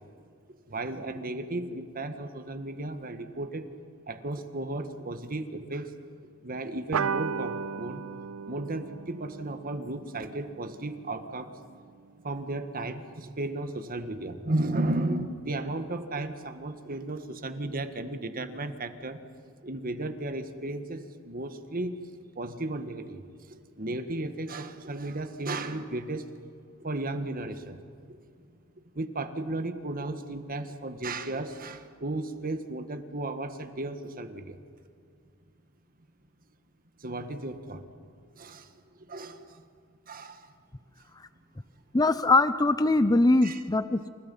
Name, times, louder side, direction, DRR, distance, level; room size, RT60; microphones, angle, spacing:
voice 1, 0.7-3.6 4.1-5.9 6.4-8.0 8.5-11.5 12.2-19.2 19.6-21.9 22.3-23.2 23.5-26.3 26.8-27.8 28.1-28.2 28.9-34.6 37.0-37.9 38.3-38.7 39.1-39.6 40.1-40.5 43.4-43.6, right 2 dB, 45° right, 8 dB, 1.6 m, -34 dB
sound 1, 6.9-11.8, right 6 dB, 80° right, 0.5 m, -36 dB
voice 2, 41.9-44.1, left 2 dB, 20° left, 13 dB, 0.6 m, -22 dB
28.5 x 27.5 x 5.5 m, 2.3 s
head